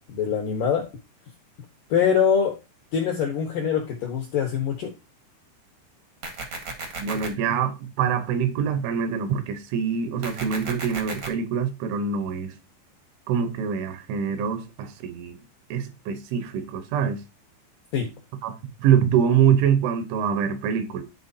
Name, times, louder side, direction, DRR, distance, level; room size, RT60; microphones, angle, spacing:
voice 1, 0.1-0.8 1.9-2.6 2.9-4.9 17.9-18.1, left 7 dB, 75° left, 2.0 m, -23 dB
sound 1, 6.2-7.3 10.2-11.3, right 3 dB, 60° right, 1.3 m, -34 dB
voice 2, 7.0-12.5 13.3-15.4 15.7-17.2 18.4-21.0, right 8 dB, 80° right, 3.4 m, -24 dB
13.0 x 4.5 x 2.7 m
omnidirectional pair, 5.7 m